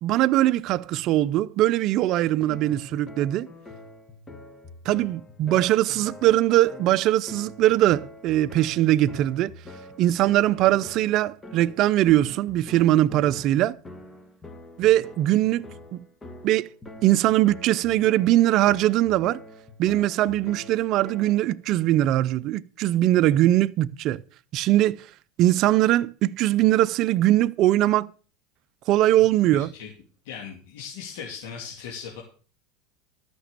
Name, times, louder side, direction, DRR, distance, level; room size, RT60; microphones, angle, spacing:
voice 1, 0.0-3.5 4.9-9.5 10.0-13.7 14.8-15.7 15.9-16.0 16.4-16.7 17.0-19.4 19.8-24.2 24.5-25.1 25.4-28.1 28.9-29.7, right 14 dB, 45° right, 0.5 m, -21 dB
sound 1, 2.5-21.6, left 2 dB, 15° left, 1.6 m, -45 dB
voice 2, 29.5-29.9 30.2-32.2, left 7 dB, 75° left, 2.6 m, -38 dB
13.0 x 6.0 x 6.7 m
supercardioid pair, 140°, 0 cm